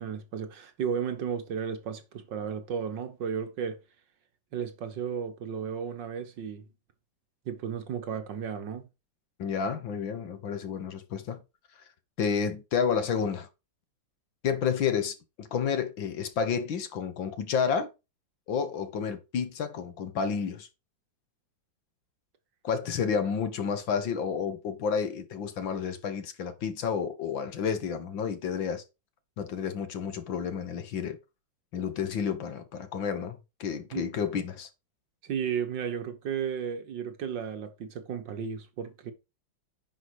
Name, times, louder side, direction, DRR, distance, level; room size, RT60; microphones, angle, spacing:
voice 1, 0.0-3.8 4.5-6.7 7.5-8.9 33.9-34.0 35.2-39.1, right 7 dB, 70° right, 2.0 m, -34 dB
voice 2, 9.4-11.4 12.2-13.5 14.4-17.9 18.5-20.7 22.6-28.8 29.4-31.2 31.7-34.7, left 6 dB, 85° left, 2.2 m, -30 dB
9.9 x 5.2 x 4.8 m
omnidirectional pair, 2.0 m